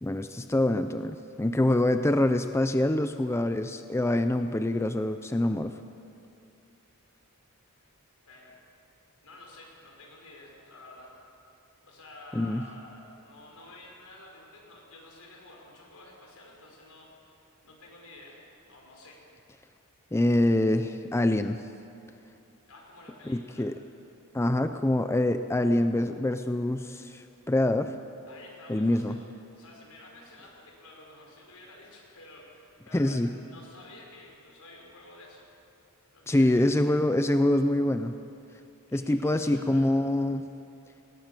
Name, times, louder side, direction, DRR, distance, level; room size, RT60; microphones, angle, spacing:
voice 1, 0.0-5.7 12.3-12.6 20.1-21.6 23.3-23.7 24.3-27.9 28.7-29.2 32.9-33.3 36.3-38.1 38.9-40.5, left 1 dB, 10° left, 9 dB, 0.5 m, -25 dB
voice 2, 8.3-8.6 9.2-11.1 11.8-19.2 22.7-23.7 28.2-35.5 36.1-36.8 38.9-39.9, left 2 dB, 75° left, -1 dB, 5.3 m, -51 dB
19.0 x 18.0 x 7.5 m, 2.6 s
head